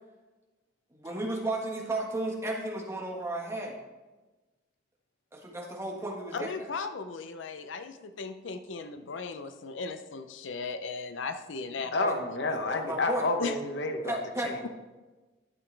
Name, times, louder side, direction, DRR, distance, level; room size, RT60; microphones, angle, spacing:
voice 1, 0.9-3.8 5.3-6.7 12.0-12.1 12.7-13.3 14.0-14.5, right 1 dB, 15° right, -1 dB, 1.5 m, -34 dB
voice 2, 6.3-11.9 13.4-13.5, left 4 dB, 85° left, 9 dB, 0.6 m, -37 dB
voice 3, 11.9-14.2 14.4-14.6, left 2 dB, 65° left, 5 dB, 1.0 m, -30 dB
12.0 x 7.1 x 3.4 m, 1.2 s
head